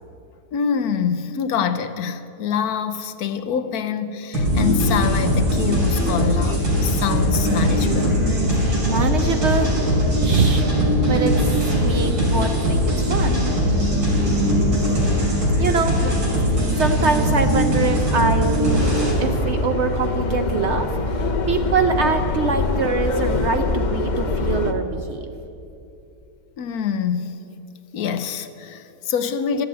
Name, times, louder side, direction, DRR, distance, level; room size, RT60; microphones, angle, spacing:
voice 1, 0.5-8.3 16.0-16.5 26.6-27.4 27.9-29.7, left 7 dB, 75° left, 1.1 m, -25 dB
sound 1, 4.3-19.1, equal, 90° right, 4.2 m, -20 dB
voice 2, 8.8-9.7 10.2-10.7 11.1-13.4 15.6-16.0 16.8-18.9 19.2-25.3, right 4 dB, 60° right, 0.8 m, -24 dB
Subway metro underground, 18.6-24.7, left 3 dB, 45° left, 0.6 m, -24 dB
13.0 x 7.7 x 8.8 m
omnidirectional pair, 1.7 m